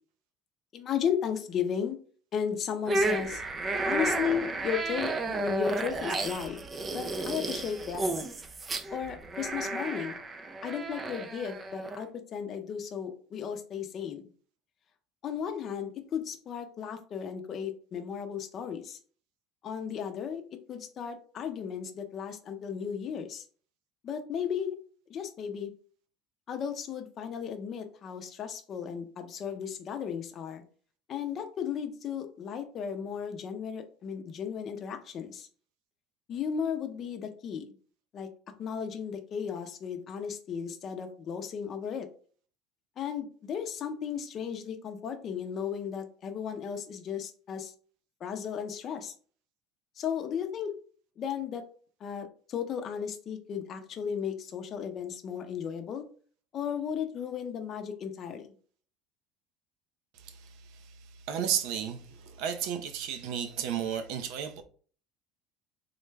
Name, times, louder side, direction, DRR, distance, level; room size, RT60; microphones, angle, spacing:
voice 1, 0.7-2.0 2.3-3.4 3.9-6.6 6.9-8.2 8.9-10.1 10.6-14.2 15.2-19.0 19.6-20.4 20.7-23.4 24.0-24.8 25.1-25.7 26.5-30.6 31.1-35.5 36.3-37.6 38.1-38.3 38.6-42.1 43.0-47.7 48.2-49.1 50.0-50.7 51.2-51.6 52.0-56.0 56.5-58.5, left 7 dB, 40° left, 0.6 m, -35 dB
sound 1, 2.9-12.0, right 2 dB, 20° right, 0.4 m, -32 dB
voice 2, 60.2-60.5 61.3-64.6, right 9 dB, 70° right, 0.6 m, -33 dB
3.8 x 2.2 x 3.2 m
cardioid pair, 135°, 0 cm